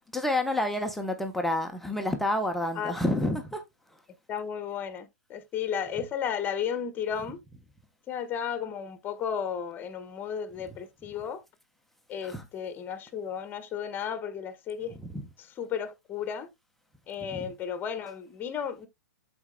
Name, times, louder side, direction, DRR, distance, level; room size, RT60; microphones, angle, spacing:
voice 1, 0.1-3.6 12.2-12.5 15.0-15.2 17.3-17.5, left 1 dB, ahead, 0.9 m, -29 dB
voice 2, 4.3-7.4 8.1-11.4 12.1-15.0 15.6-16.5 17.1-18.9, left 8 dB, 20° left, 1.3 m, -34 dB
13.0 x 4.4 x 2.2 m
figure-of-eight pair, 115°, 9 cm